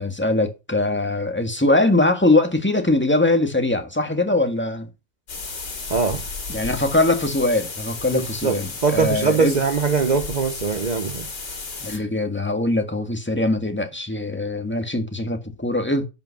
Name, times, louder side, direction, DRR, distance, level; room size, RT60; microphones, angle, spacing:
voice 1, 0.0-4.9 6.5-9.6 11.8-16.1, left 2 dB, 5° left, 1.6 m, -22 dB
sound 1, 5.3-12.0, left 4 dB, 85° left, 3.4 m, -33 dB
voice 2, 5.9-6.2 8.1-11.3, right 5 dB, 60° right, 0.4 m, -22 dB
11.0 x 5.6 x 5.8 m
omnidirectional pair, 1.8 m